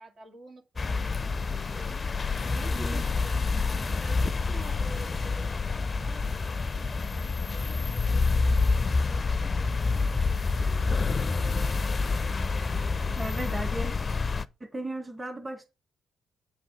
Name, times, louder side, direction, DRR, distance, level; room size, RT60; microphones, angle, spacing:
voice 1, 0.0-1.8 2.3-3.7 4.0-10.9, right 2 dB, 55° right, 2.0 m, -49 dB
sound 1, 0.8-14.5, left 4 dB, 35° left, 0.6 m, -27 dB
voice 2, 2.7-3.0 3.5-3.6 13.2-13.9 14.6-15.7, right 1 dB, 20° right, 1.9 m, -36 dB
8.6 x 4.1 x 6.9 m
supercardioid pair, 65°, 0 cm